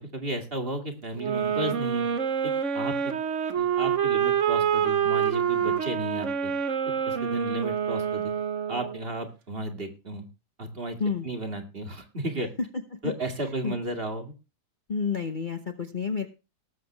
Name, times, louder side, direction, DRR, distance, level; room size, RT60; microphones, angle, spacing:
voice 1, 0.0-2.1 2.4-3.2 3.5-6.5 7.1-8.3 8.7-10.3 10.6-11.0 11.2-12.5 13.0-14.3, right 1 dB, 35° right, 6 dB, 2.5 m, -34 dB
sound 1, 1.2-9.0, right 8 dB, 50° right, 1.4 m, -26 dB
voice 2, 14.9-16.3, left 5 dB, 35° left, 7 dB, 1.0 m, -29 dB
19.0 x 7.6 x 3.3 m, 0.30 s
omnidirectional pair, 1.7 m